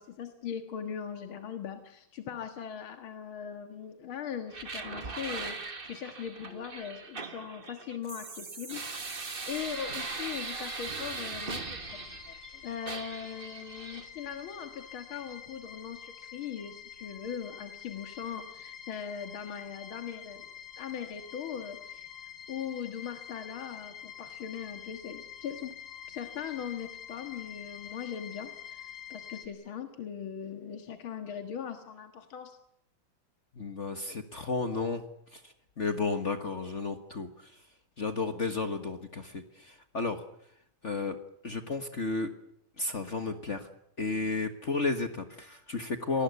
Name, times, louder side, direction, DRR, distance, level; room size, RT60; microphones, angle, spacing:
voice 1, 0.0-12.0 12.6-20.5 20.8-22.1 22.5-25.7 26.1-32.6, left 8 dB, 80° left, 6 dB, 2.5 m, -40 dB
sound 1, 4.5-12.5 12.9-14.1, right 4 dB, 30° right, 1.6 m, -40 dB
sound 2, 9.5-29.5, left 8 dB, 65° left, 2.8 m, -47 dB
voice 2, 12.3-12.6 33.5-35.0 35.3-37.7 38.0-40.2 40.8-41.1 41.4-42.3 42.8-43.7 44.0-46.2, left 3 dB, 40° left, 7 dB, 1.7 m, -33 dB
27.0 x 19.5 x 8.3 m, 0.74 s
omnidirectional pair, 2.2 m